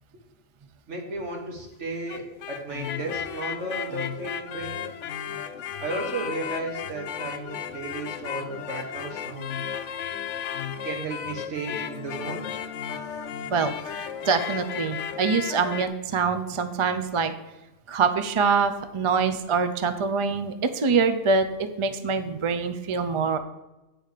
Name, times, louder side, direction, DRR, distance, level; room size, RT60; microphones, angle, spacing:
voice 1, 0.9-4.8 5.8-9.5 10.8-12.5, right 2 dB, 70° right, 1 dB, 2.0 m, -34 dB
sound 1, 1.9-15.9, left 8 dB, 80° left, 1.0 m, -34 dB
voice 2, 13.5-17.3 17.9-23.4, right 5 dB, 35° right, 9 dB, 0.5 m, -25 dB
9.1 x 4.7 x 6.5 m, 1.0 s
omnidirectional pair, 1.3 m